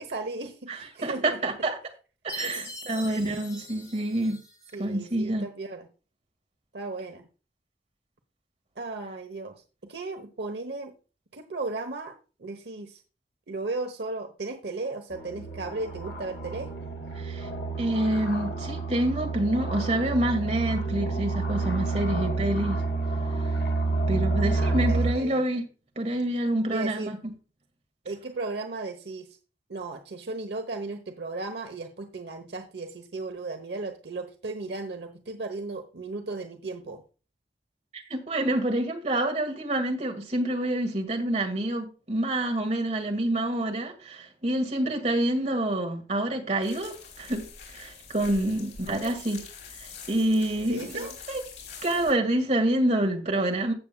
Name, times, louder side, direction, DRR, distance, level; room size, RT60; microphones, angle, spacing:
voice 1, 0.0-1.5 2.4-2.7 4.7-5.9 6.7-7.3 8.8-9.5 9.9-10.9 11.3-12.1 12.4-13.0 13.5-16.7 24.4-25.5 26.7-27.1 28.0-29.3 29.7-37.0 48.9-49.2 50.7-51.2, right 3 dB, 70° right, 1.0 m, -35 dB
voice 2, 0.7-1.7 2.2-4.4 4.8-5.5 17.2-17.5 17.8-22.8 24.1-25.6 26.0-27.2 37.9-47.4 47.7-49.4 49.8-51.4 51.8-53.7, right 1 dB, 40° right, 2.1 m, -27 dB
Chime, 2.3-4.7, left 1 dB, 20° left, 3.0 m, -41 dB
sound 1, 15.1-25.1, right 3 dB, 65° left, 1.9 m, -29 dB
sound 2, 46.6-52.1, left 5 dB, 85° left, 4.3 m, -45 dB
16.0 x 7.1 x 2.3 m
head